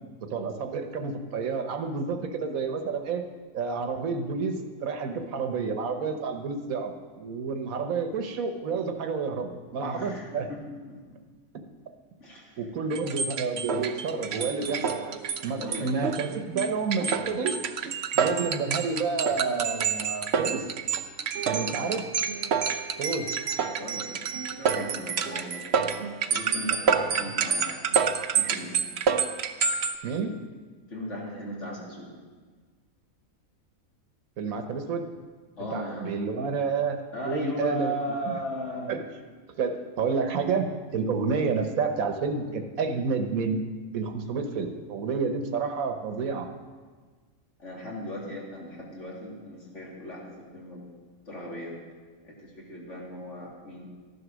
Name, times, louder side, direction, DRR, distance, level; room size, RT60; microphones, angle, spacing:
voice 1, 0.2-3.3 3.5-10.5 12.6-14.9 15.4-17.5 18.1-20.7 21.4-22.1 23.0-23.3 30.0-30.4 34.4-35.0 35.7-37.0 37.2-38.4 38.9-39.0 39.6-43.6 43.9-46.5, right 5 dB, 80° right, 5 dB, 1.5 m, -29 dB
voice 2, 9.8-11.0 12.2-12.6 15.6-16.1 21.5-21.9 23.8-24.3 24.6-27.8 28.4-28.7 30.9-32.1 35.6-36.2 37.1-38.9 47.6-50.8 51.3-51.7 52.2-53.9, equal, 60° left, -4 dB, 3.5 m, -37 dB
sound 1, 12.9-30.0, right 6 dB, 55° right, 0.9 m, -28 dB
13.5 x 11.5 x 6.2 m, 1.5 s
omnidirectional pair, 1.4 m